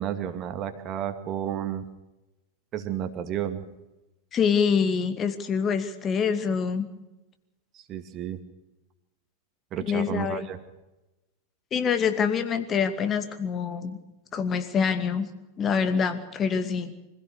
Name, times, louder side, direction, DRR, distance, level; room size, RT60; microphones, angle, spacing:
voice 1, 0.0-1.8 2.7-3.6 7.7-8.4 9.7-10.6, right 10 dB, 35° right, 8 dB, 2.3 m, -31 dB
voice 2, 4.3-6.9 9.9-10.5 11.7-14.0 14.3-15.3 15.6-16.9, left 6 dB, 25° left, 8 dB, 2.3 m, -25 dB
25.5 x 16.5 x 6.8 m, 1.0 s
figure-of-eight pair, 90°, 0 cm